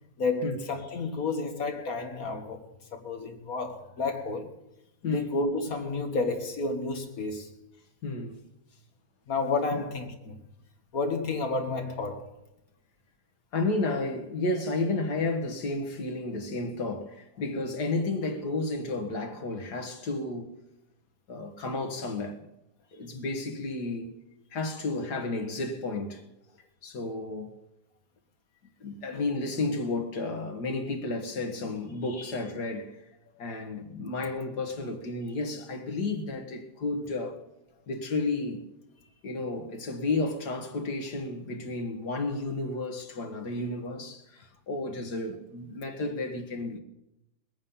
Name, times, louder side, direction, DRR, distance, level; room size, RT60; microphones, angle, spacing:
voice 1, 0.2-4.5 5.0-7.5 9.3-10.4 10.9-12.3 32.2-32.3, left 3 dB, 60° left, 1.9 m, -31 dB
voice 2, 8.0-8.4 9.7-9.8 13.5-20.5 21.3-22.5 22.9-24.1 24.5-26.2 26.8-27.6 28.8-33.0 33.4-37.4 37.9-38.6 39.2-46.8, left 2 dB, 80° left, 2.3 m, -32 dB
21.0 x 8.7 x 5.6 m
omnidirectional pair, 1.7 m